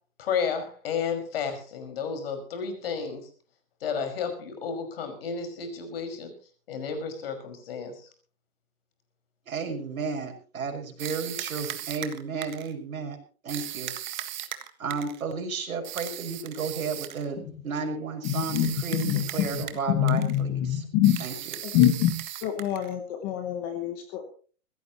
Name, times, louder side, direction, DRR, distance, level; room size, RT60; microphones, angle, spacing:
voice 1, 0.2-3.3 3.8-6.3 6.7-8.1, left 6 dB, 45° left, 7 dB, 5.6 m, -32 dB
voice 2, 9.5-13.2 13.4-13.9 14.8-20.8 21.2-21.3, right 5 dB, 90° right, 4 dB, 5.9 m, -33 dB
sound 1, 11.0-12.7 13.5-15.2 15.8-17.2 18.2-19.8 20.1-20.4 21.0-22.9, right 12 dB, 35° right, 1.6 m, -37 dB
voice 3, 18.2-21.2 21.6-22.2 22.4-24.2, left 11 dB, 15° left, 7 dB, 1.1 m, -25 dB
22.0 x 17.0 x 3.0 m, 0.39 s
hypercardioid pair, 175°, 41 cm